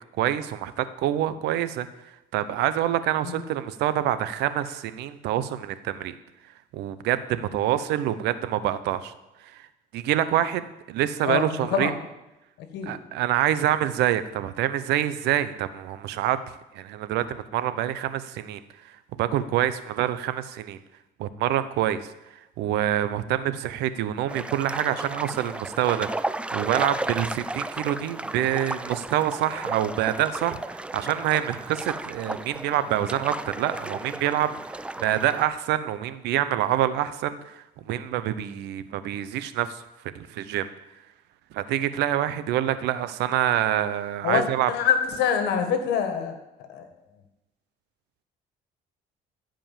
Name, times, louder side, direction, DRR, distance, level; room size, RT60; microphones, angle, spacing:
voice 1, 0.2-1.9 2.3-6.1 6.7-9.1 9.9-11.9 12.9-16.4 16.7-18.6 19.2-20.8 21.2-22.1 22.6-26.1 26.5-34.5 35.0-39.8 40.1-40.7 41.5-44.7, right 12 dB, 85° right, 13 dB, 0.8 m, -26 dB
voice 2, 11.2-12.0 12.7-12.9 44.2-46.4 46.7-46.8, left 7 dB, 80° left, 7 dB, 1.7 m, -25 dB
sound 1, 24.3-35.4, right 2 dB, 5° right, 0.4 m, -34 dB
15.0 x 5.1 x 7.5 m, 0.97 s
cardioid pair, 110°, 17 cm